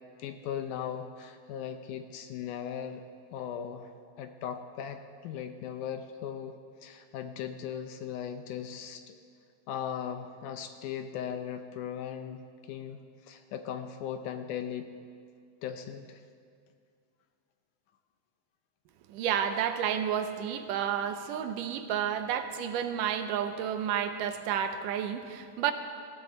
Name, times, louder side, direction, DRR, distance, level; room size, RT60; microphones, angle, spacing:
voice 1, 0.2-3.0 3.3-3.9 4.2-6.6 6.8-9.2 9.7-14.9 15.6-16.2, left 8 dB, 75° left, 7 dB, 2.0 m, -38 dB
voice 2, 19.1-25.7, right 9 dB, 80° right, 8 dB, 2.2 m, -31 dB
19.5 x 15.0 x 4.0 m, 2.2 s
omnidirectional pair, 4.0 m